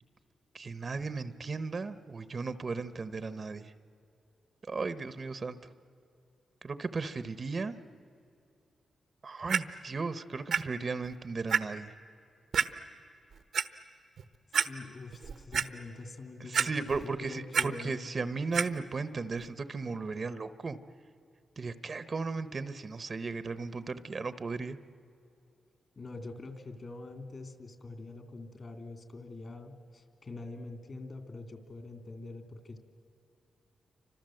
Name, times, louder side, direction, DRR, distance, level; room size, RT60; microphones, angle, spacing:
voice 1, 0.5-3.7 4.7-5.6 6.6-7.7 9.2-11.9 16.5-20.8 21.6-24.8, right 4 dB, 40° right, 12 dB, 1.0 m, -36 dB
Clock, 9.5-9.6 10.5-10.6 11.0-11.1 11.5-11.6 12.5-12.7 13.3-13.6 14.2-14.3 14.5-14.7 15.1-15.7 16.5-17.1 17.3-17.7 18.5-18.7 19.4-19.5, right 6 dB, 70° right, 1.1 m, -27 dB
voice 2, 14.5-16.9 17.2-18.0 25.9-32.8, left 3 dB, 45° left, 7 dB, 3.1 m, -45 dB
29.5 x 25.5 x 7.8 m, 2.6 s
cardioid pair, 95°, 0 cm